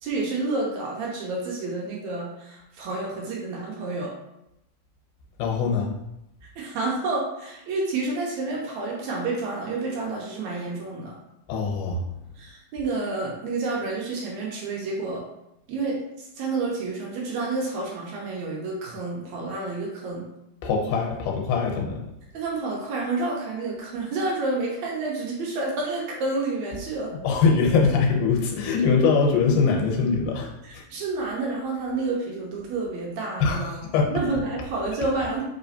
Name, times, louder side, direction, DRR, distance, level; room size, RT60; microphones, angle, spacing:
voice 1, 0.0-4.1 6.6-11.1 12.4-15.2 15.7-16.0 16.4-20.2 22.3-27.1 30.6-33.8 34.1-35.4, right 3 dB, 75° right, -2 dB, 1.8 m, -29 dB
voice 2, 5.4-5.9 11.5-12.0 20.6-22.0 27.2-30.5 33.4-34.1, left 5 dB, 80° left, 0 dB, 2.3 m, -22 dB
4.8 x 3.0 x 2.7 m, 0.86 s
omnidirectional pair, 3.8 m